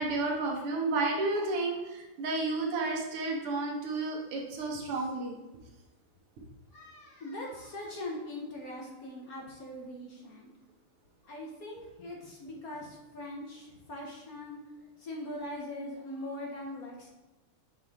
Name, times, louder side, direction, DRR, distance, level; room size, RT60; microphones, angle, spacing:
voice 1, 0.0-5.4, right 3 dB, 90° right, 0 dB, 2.0 m, -31 dB
voice 2, 6.7-10.5 11.2-14.6 15.0-17.1, left 1 dB, 55° left, -1 dB, 1.2 m, -41 dB
7.8 x 4.3 x 3.5 m, 1.1 s
omnidirectional pair, 2.4 m